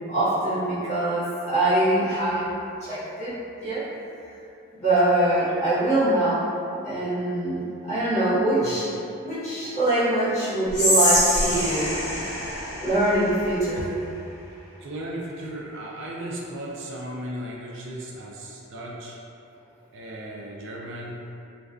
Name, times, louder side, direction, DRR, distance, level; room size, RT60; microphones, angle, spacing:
voice 1, 0.1-2.5 2.8-3.3 3.6-3.8 4.8-6.4 6.8-8.9 9.2-11.9 12.8-13.8, right 1 dB, 30° left, -13 dB, 0.9 m, -23 dB
Whispering, 10.7-13.9, equal, 60° left, 1.0 m, -25 dB
voice 2, 14.8-19.2 19.9-21.2, right 1 dB, 60° right, -3 dB, 0.3 m, -36 dB
2.3 x 2.3 x 2.4 m, 2.6 s
head